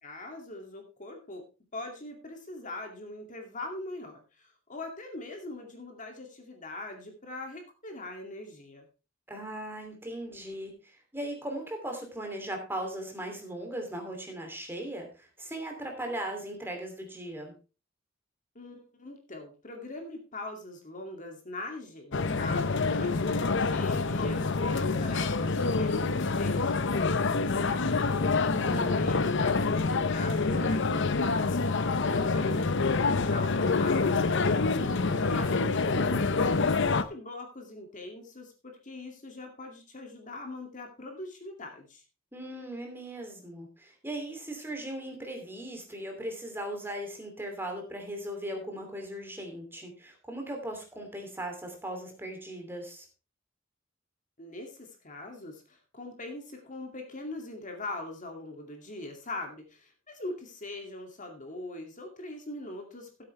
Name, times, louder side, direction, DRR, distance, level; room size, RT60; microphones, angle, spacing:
voice 1, 0.0-1.4 1.7-8.9 18.5-28.1 28.7-31.6 32.1-42.0 54.4-63.2, left 2 dB, 40° left, 3 dB, 2.4 m, -42 dB
voice 2, 9.3-17.5 28.4-29.0 42.3-53.1, right 1 dB, 10° right, 2 dB, 2.8 m, -38 dB
sound 1, 22.1-37.0, left 4 dB, 65° left, 0.8 m, -27 dB
15.0 x 8.4 x 3.3 m, 0.32 s
head